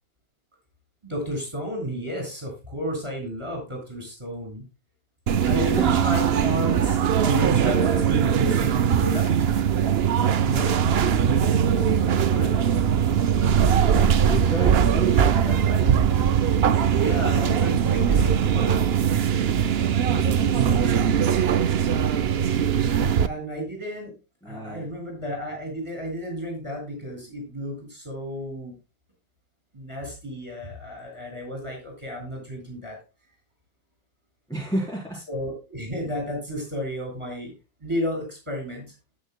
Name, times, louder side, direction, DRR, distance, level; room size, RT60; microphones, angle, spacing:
voice 1, 1.0-4.6 5.4-9.3 10.0-12.5 17.0-18.8 20.1-21.0 23.2-24.1 24.4-28.7 29.7-33.0 35.3-37.5 37.8-38.9, equal, 15° right, 2 dB, 7.5 m, -32 dB
sound 1, 5.3-23.3, right 8 dB, 75° right, 0.5 m, -21 dB
voice 2, 5.5-6.1 14.3-16.2 24.4-24.9 34.5-35.2, right 1 dB, ahead, -4 dB, 4.2 m, -32 dB
19.0 x 7.6 x 2.2 m, 0.30 s
omnidirectional pair, 2.0 m